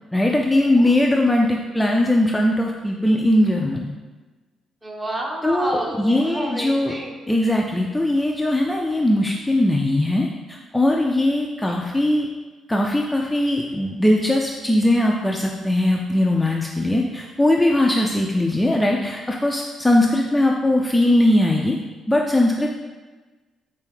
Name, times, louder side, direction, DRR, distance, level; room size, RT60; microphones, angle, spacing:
voice 1, 0.1-3.9 5.4-6.9 7.3-12.3 12.7-21.8 22.1-22.8, left 1 dB, 10° left, 0 dB, 0.3 m, -20 dB
voice 2, 4.8-7.2, right 1 dB, 20° right, 0 dB, 0.7 m, -30 dB
4.6 x 2.7 x 3.4 m, 1.3 s
cardioid pair, 90°, 0 cm